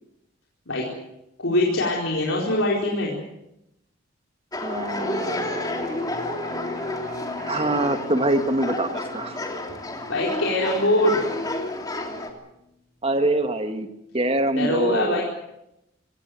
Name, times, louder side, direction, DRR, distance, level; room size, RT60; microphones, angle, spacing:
voice 1, 1.4-3.1 10.1-11.2 14.6-15.2, left 1 dB, 85° left, -3 dB, 4.5 m, -22 dB
sound 1, 4.5-12.3, left 1 dB, 20° left, 3.1 m, -30 dB
voice 2, 4.6-5.6 7.5-9.4 13.0-13.9 14.1-15.2, right 1 dB, 30° right, 7 dB, 1.9 m, -24 dB
Electric guitar, 4.9-12.5, equal, 50° right, 7.5 m, -41 dB
25.5 x 18.0 x 7.8 m, 0.86 s
head